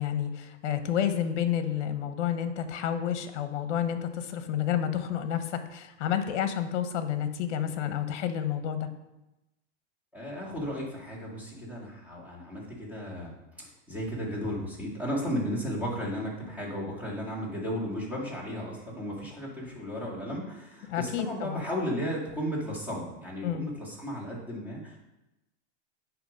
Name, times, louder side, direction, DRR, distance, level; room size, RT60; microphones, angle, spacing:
voice 1, 0.0-8.9 20.9-21.6 23.4-23.7, left 9 dB, 65° left, 9 dB, 0.9 m, -30 dB
voice 2, 10.1-13.3 13.9-25.0, equal, 5° right, -6 dB, 2.0 m, -34 dB
8.8 x 3.1 x 5.1 m, 0.96 s
hypercardioid pair, 135°, 37 cm